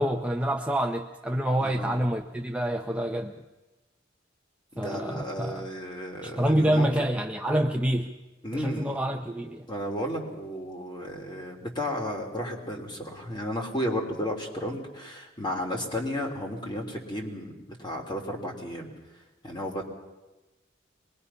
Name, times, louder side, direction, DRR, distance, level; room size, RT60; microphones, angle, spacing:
voice 1, 0.0-3.4 4.8-5.7 6.2-8.2 8.5-9.7, right 1 dB, 5° right, 3 dB, 0.7 m, -27 dB
voice 2, 1.6-2.0 4.7-6.9 8.4-8.9 9.7-17.5 17.8-18.9 19.4-19.8, equal, 25° left, 1 dB, 3.2 m, -33 dB
24.5 x 21.5 x 5.7 m, 1.1 s
head